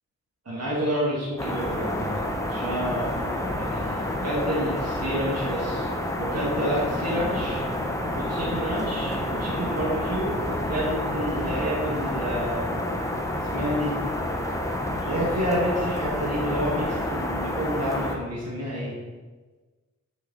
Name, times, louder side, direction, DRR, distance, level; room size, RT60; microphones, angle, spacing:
voice 1, 0.4-2.1 2.5-5.9 6.2-7.6 8.1-12.8 13.5-13.9 14.9-19.0, equal, 60° right, -6 dB, 1.6 m, -29 dB
sound 1, 1.4-18.2, left 1 dB, 10° left, 0.8 m, -29 dB
6.4 x 4.5 x 3.9 m, 1.3 s
wide cardioid pair, 95°, 29 cm